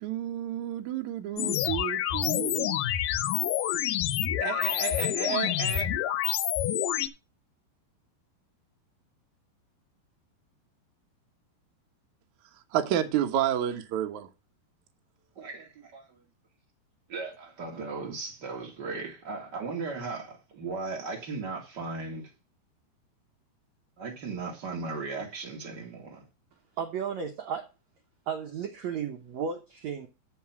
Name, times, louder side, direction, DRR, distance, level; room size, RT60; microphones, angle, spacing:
voice 1, 0.0-2.8 4.4-5.9 12.7-14.3, right 10 dB, 65° right, 2.1 m, -30 dB
sound 1, 1.4-7.1, left 12 dB, 80° left, 2.0 m, -28 dB
voice 2, 15.4-16.2 17.1-22.3 24.0-26.3, right 4 dB, 35° right, 1.8 m, -37 dB
voice 3, 26.8-27.7 28.3-30.1, right 7 dB, 85° right, 1.5 m, -34 dB
13.5 x 4.7 x 6.0 m
omnidirectional pair, 4.8 m